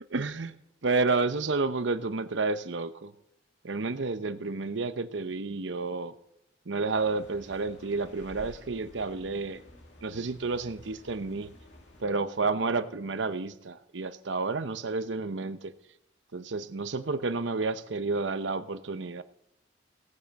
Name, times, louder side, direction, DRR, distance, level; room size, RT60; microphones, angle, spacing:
voice 1, 0.1-0.5 0.8-3.1 3.6-6.1 6.7-9.6 10.0-11.5 12.0-15.7 16.3-19.2, right 3 dB, 75° right, 11 dB, 0.8 m, -30 dB
sound 1, 6.9-12.0, left 1 dB, 75° left, 2.2 m, -52 dB
17.0 x 9.5 x 4.2 m, 0.82 s
head